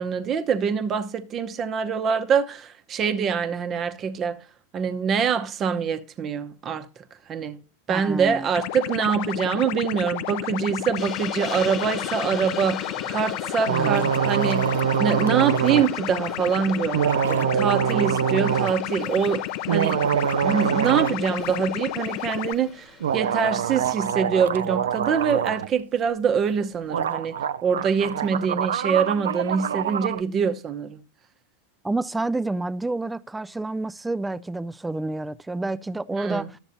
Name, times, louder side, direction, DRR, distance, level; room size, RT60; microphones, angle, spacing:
voice 1, 0.0-4.4 4.7-6.9 7.3-7.6 7.9-20.1 20.4-27.4 27.6-31.0 36.1-36.5, right 6 dB, 35° right, 0.9 m, -25 dB
voice 2, 7.9-8.5 13.7-14.1 31.8-36.5, right 2 dB, 10° right, 0.3 m, -29 dB
sound 1, 8.5-22.5, left 14 dB, 60° left, 0.5 m, -32 dB
Hiss, 11.0-23.5, left 6 dB, 35° left, 1.1 m, -39 dB
sound 2, 13.7-15.9 16.9-18.7 19.5-21.2 21.5-21.6 23.0-25.7 26.6-26.7 26.9-30.2, right 8 dB, 80° right, 0.4 m, -25 dB
12.0 x 7.0 x 2.7 m
hypercardioid pair, 105°, 0 cm